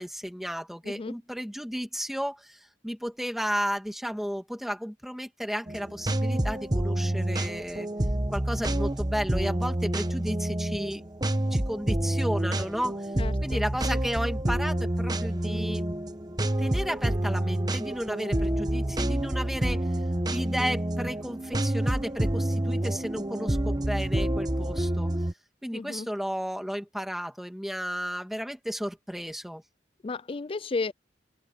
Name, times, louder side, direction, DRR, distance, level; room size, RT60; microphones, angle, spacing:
voice 1, 0.0-7.9 8.3-11.0 11.4-13.1 13.4-15.8 16.6-19.9 20.3-25.1 25.6-29.6, equal, ahead, 2.5 m, -33 dB
sound 1, 5.7-25.3, right 1 dB, 25° right, 1.1 m, -28 dB
voice 2, 13.1-13.6 25.7-26.1 30.0-30.9, left 3 dB, 30° left, 0.4 m, -33 dB
head